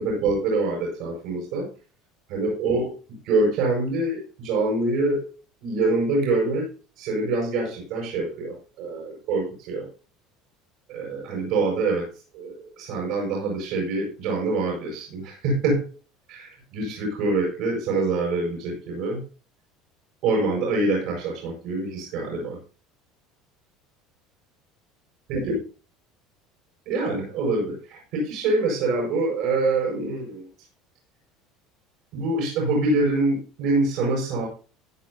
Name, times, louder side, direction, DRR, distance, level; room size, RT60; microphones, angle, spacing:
voice 1, 0.0-1.7 2.3-3.0 3.2-5.3 5.6-6.7 7.0-9.9 10.9-15.8 16.3-19.2 20.2-22.6 25.3-25.6 26.8-30.5 32.1-34.5, right 2 dB, 70° right, -3 dB, 6.8 m, -25 dB
16.5 x 9.4 x 2.8 m, 0.36 s
supercardioid pair, 105°, 0 cm